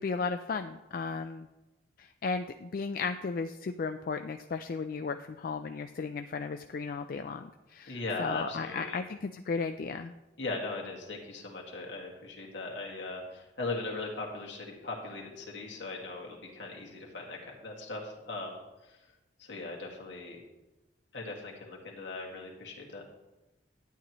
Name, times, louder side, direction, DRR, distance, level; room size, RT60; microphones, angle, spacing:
voice 1, 0.0-1.5 2.0-10.1, left 4 dB, 50° left, 7 dB, 0.3 m, -35 dB
voice 2, 7.9-9.0 10.4-18.6 18.9-19.0 19.4-20.4 21.1-23.0, left 3 dB, 75° left, -1 dB, 2.0 m, -39 dB
11.5 x 9.3 x 3.0 m, 1.1 s
head